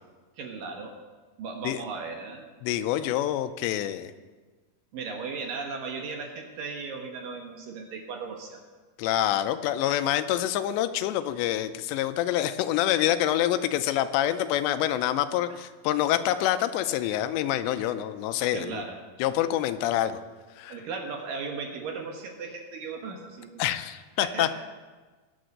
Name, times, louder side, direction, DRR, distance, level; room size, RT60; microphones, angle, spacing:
voice 1, 0.4-0.9 1.4-2.4 4.9-8.6 15.5-15.6 18.5-19.0 20.7-23.6 24.2-24.5, right 4 dB, 65° right, 2 dB, 2.6 m, -36 dB
voice 2, 2.6-4.1 9.0-18.8 19.2-20.2 20.6-20.8 23.6-24.5, left 12 dB, 90° left, 11 dB, 2.9 m, -26 dB
20.5 x 7.0 x 6.5 m, 1.4 s
omnidirectional pair, 4.9 m